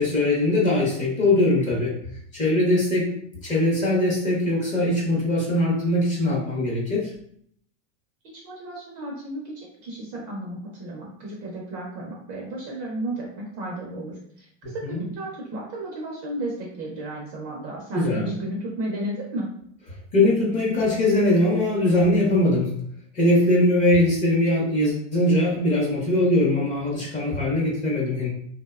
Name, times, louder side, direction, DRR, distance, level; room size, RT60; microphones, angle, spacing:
voice 1, 0.0-2.0 2.3-7.1 14.8-15.0 17.9-18.4 20.1-22.7 23.1-28.3, left 1 dB, 20° left, -5 dB, 0.5 m, -21 dB
voice 2, 8.3-19.5, right 1 dB, 35° right, -2 dB, 0.4 m, -33 dB
2.7 x 2.0 x 2.2 m, 0.65 s
supercardioid pair, 150°, 38 cm